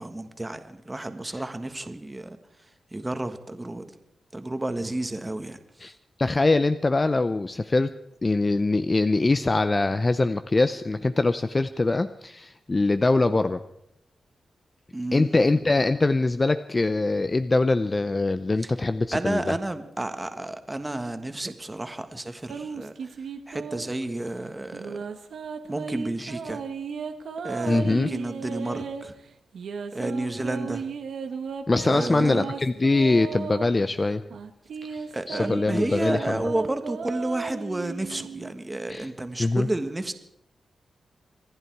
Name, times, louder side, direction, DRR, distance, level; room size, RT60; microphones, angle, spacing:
voice 1, 0.0-2.4 2.9-3.9 4.3-5.6 14.9-15.4 19.1-23.1 23.5-25.0 25.7-26.6 27.4-29.2 29.9-30.9 31.8-32.5 35.1-40.1, right 2 dB, 20° right, 8 dB, 1.5 m, -31 dB
voice 2, 6.2-13.6 15.1-19.5 27.7-28.1 31.7-34.2 34.8-36.4 38.9-39.1 39.4-39.7, left 2 dB, 30° left, 11 dB, 0.5 m, -23 dB
sound 1, 22.5-24.0 24.7-29.0 29.5-33.7 34.3-38.5, right 6 dB, 80° right, 1.3 m, -35 dB
26.0 x 11.0 x 4.7 m, 0.78 s
cardioid pair, 75°, 0 cm